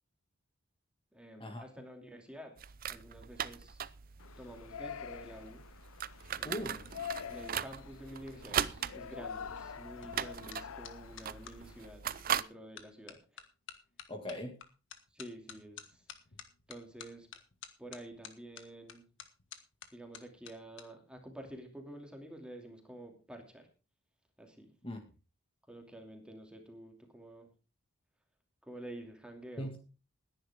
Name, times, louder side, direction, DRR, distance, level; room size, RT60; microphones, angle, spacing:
voice 1, 1.1-2.6 2.9-3.8 4.4-5.6 6.4-6.9 7.3-13.5 15.1-16.0 16.7-17.3 17.8-19.1 19.9-23.7 24.4-24.7 25.7-27.5 28.6-29.7, right 1 dB, 5° right, 2.6 m, -49 dB
sound 1, 2.6-12.4, right 8 dB, 45° right, 0.6 m, -39 dB
Yell, 4.2-11.9, left 8 dB, 90° left, 0.5 m, -46 dB
voice 2, 6.4-6.8 14.1-14.6 24.8-25.0 29.6-29.8, equal, 25° left, 2.0 m, -39 dB
sound 2, 6.7-11.6 12.2-12.5 12.8-20.8 21.1-21.5, left 7 dB, 60° left, 1.6 m, -53 dB
18.5 x 10.5 x 3.6 m
head